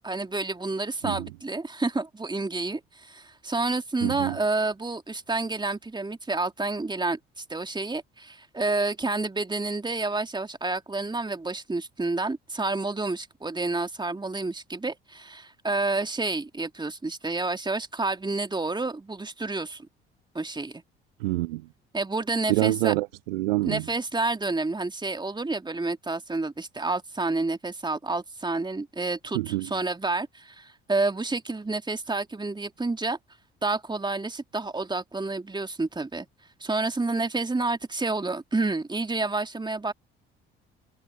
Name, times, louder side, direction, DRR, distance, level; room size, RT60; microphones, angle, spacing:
voice 1, 0.0-19.9 20.3-20.8 21.9-22.9 23.6-33.2 33.6-36.3 36.6-39.9, right 3 dB, 15° right, 2.6 m, -29 dB
voice 2, 4.0-4.4 21.2-21.6 22.5-23.8 29.3-29.7, right 20 dB, 75° right, 0.4 m, -26 dB
figure-of-eight pair, 55°, 30 cm